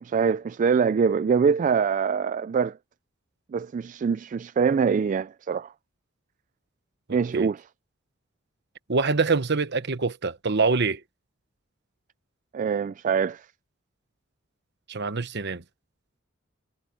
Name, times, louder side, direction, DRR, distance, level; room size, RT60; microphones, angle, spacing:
voice 1, 0.0-2.8 3.5-5.7 7.1-7.7 12.5-13.5, right 6 dB, 40° right, 0.3 m, -24 dB
voice 2, 8.9-11.0 14.9-15.6, right 4 dB, 60° right, 1.2 m, -25 dB
head